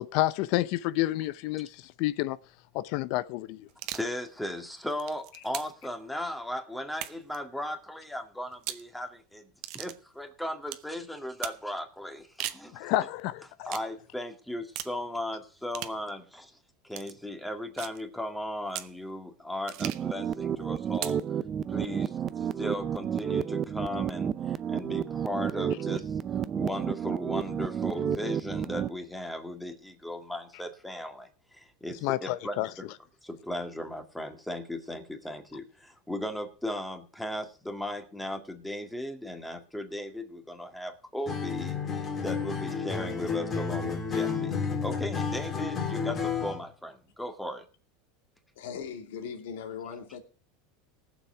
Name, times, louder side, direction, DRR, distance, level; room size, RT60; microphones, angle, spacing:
voice 1, 0.0-2.4 2.7-3.7 12.7-13.7 32.0-32.7, left 16 dB, 60° left, 0.5 m, -29 dB
sound 1, 3.7-4.1 4.8-5.8 6.9-7.4 8.5-8.9 9.6-10.0 10.7-10.9 11.4-11.6 12.2-12.7 13.7-13.9 14.7-15.0 15.7-16.0 16.9-17.1 17.8-18.0 18.7-18.9 19.7-20.1 20.9-21.2, right 15 dB, 60° right, 1.0 m, -38 dB
voice 2, 3.9-13.0 13.6-16.5 16.8-21.2 21.7-32.9 33.2-47.6, left 1 dB, 5° left, 2.0 m, -37 dB
sound 2, 19.8-28.9, right 8 dB, 30° right, 0.5 m, -31 dB
Acoustic guitar, 41.3-46.7, left 5 dB, 25° left, 2.5 m, -31 dB
voice 3, 48.6-50.2, left 7 dB, 85° left, 2.5 m, -39 dB
19.5 x 7.1 x 4.7 m
supercardioid pair, 135°, 0 cm